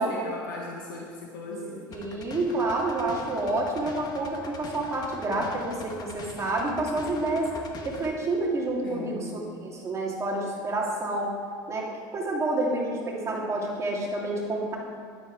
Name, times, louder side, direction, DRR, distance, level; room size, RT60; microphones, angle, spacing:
voice 1, 0.0-1.9 5.8-5.9 8.8-9.4, left 2 dB, 85° left, -1 dB, 1.5 m, -38 dB
sound 1, 1.9-8.1, left 2 dB, 40° left, 1.5 m, -43 dB
voice 2, 1.9-7.5 7.8-11.4 11.7-14.8, right 2 dB, 30° right, -2 dB, 2.7 m, -29 dB
11.0 x 8.9 x 4.8 m, 2.4 s
hypercardioid pair, 90°, 11 cm